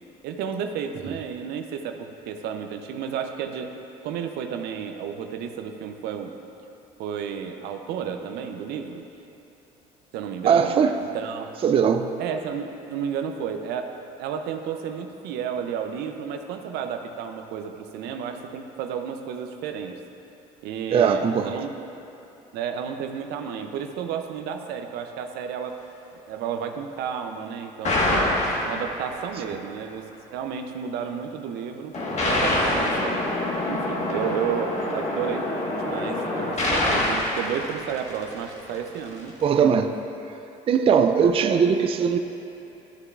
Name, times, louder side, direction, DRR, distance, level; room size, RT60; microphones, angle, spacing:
voice 1, 0.2-3.7 4.0-6.3 7.0-9.0 10.1-11.5 12.2-13.9 14.2-20.0 20.6-21.8 22.5-25.8 26.3-28.3 28.6-31.9 32.2-33.3 33.7-39.3 39.6-39.8 41.2-41.4, right 7 dB, 75° right, 6 dB, 0.6 m, -32 dB
voice 2, 10.4-10.9 11.6-12.1 20.9-21.6 39.4-39.9 40.7-42.2, right 6 dB, 35° right, 7 dB, 0.4 m, -20 dB
sound 1, 27.8-29.3 31.9-38.5, left 1 dB, 45° left, 1.5 m, -25 dB
13.0 x 6.6 x 2.5 m, 3.0 s
supercardioid pair, 80°, 17 cm